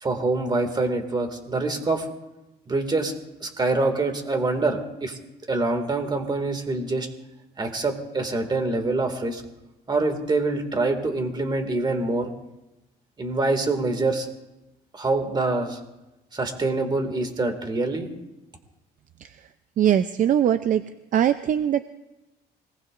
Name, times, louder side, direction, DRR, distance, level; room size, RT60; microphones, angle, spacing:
voice 1, 0.0-2.1 2.7-3.1 3.4-5.2 5.5-7.1 7.6-9.4 9.9-12.3 13.2-14.3 14.9-15.8 16.3-18.1, right 2 dB, 25° right, 5 dB, 2.3 m, -25 dB
voice 2, 19.8-20.8 21.1-21.8, right 10 dB, 50° right, 11 dB, 0.6 m, -21 dB
25.0 x 19.5 x 2.6 m, 1.0 s
cardioid pair, 110°, 17 cm